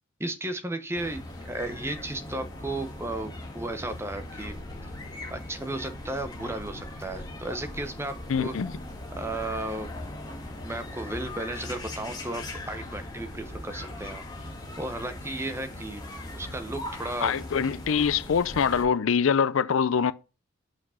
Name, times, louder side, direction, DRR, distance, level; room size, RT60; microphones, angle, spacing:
voice 1, 0.2-4.5 5.3-8.5 9.1-9.9 10.6-14.2 14.8-16.0 16.3-17.3, right 2 dB, 10° right, 0.8 m, -34 dB
sound 1, 0.9-18.8, left 1 dB, 20° left, 1.9 m, -39 dB
voice 2, 8.3-8.7 17.2-20.1, left 6 dB, 70° left, 0.4 m, -24 dB
6.0 x 4.9 x 5.6 m
head